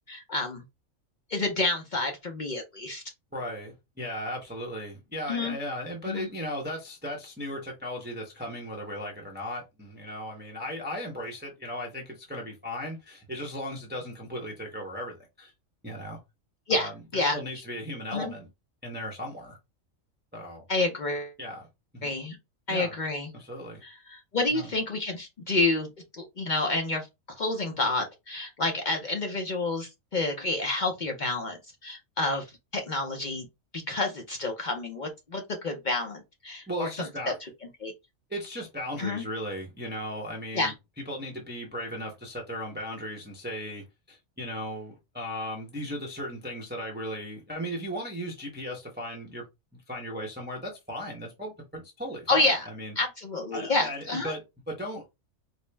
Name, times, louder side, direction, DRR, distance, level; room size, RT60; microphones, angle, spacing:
voice 1, 0.1-0.6 1.3-3.0 5.3-5.6 6.0-6.3 16.7-17.4 18.1-18.3 20.7-21.3 22.0-22.4 22.7-23.3 23.8-25.9 26.2-27.1 27.4-31.6 31.8-32.5 32.7-33.5 33.9-37.3 37.8-37.9 39.0-39.2 40.5-40.7 52.3-52.7 53.0-54.3, left 2 dB, 55° left, 0.5 m, -29 dB
voice 2, 3.3-15.5 15.8-16.2 16.7-18.5 18.8-19.6 20.3-20.6 21.4-21.7 21.9-22.2 22.7-23.0 23.3-23.8 24.5-24.7 36.7-37.3 38.3-40.7 41.1-49.4 49.9-52.9 53.5-55.1, equal, 10° right, 0.7 m, -36 dB
4.2 x 2.0 x 3.2 m
omnidirectional pair, 1.4 m